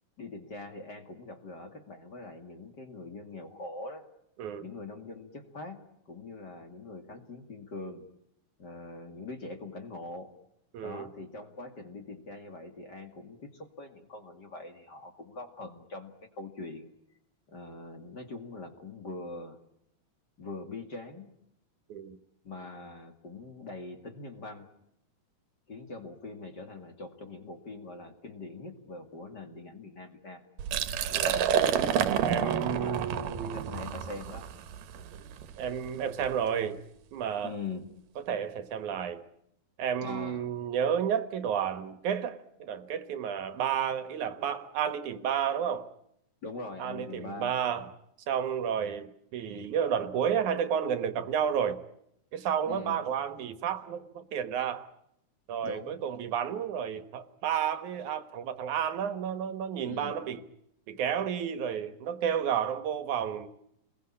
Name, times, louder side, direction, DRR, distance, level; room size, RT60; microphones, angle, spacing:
voice 1, 0.2-4.1 4.6-8.1 8.6-10.4 10.8-16.9 17.5-19.6 20.4-21.3 22.4-24.7 25.7-30.4 32.3-35.1 37.4-37.9 40.0-40.5 46.4-47.5 52.7-53.0 55.6-56.0 59.9-60.2, left 3 dB, 35° left, 2.4 m, -43 dB
voice 2, 10.7-11.1 21.9-22.2 31.1-31.6 32.2-33.8 35.1-35.3 35.6-36.8 37.1-37.5 38.3-39.2 39.8-45.9 46.8-47.9 48.3-51.8 52.3-54.9 55.5-60.4 60.9-63.5, right 8 dB, 70° right, 2.7 m, -31 dB
Liquid, 30.6-36.3, right 9 dB, 90° right, 2.8 m, -29 dB
29.5 x 21.5 x 8.7 m
omnidirectional pair, 3.7 m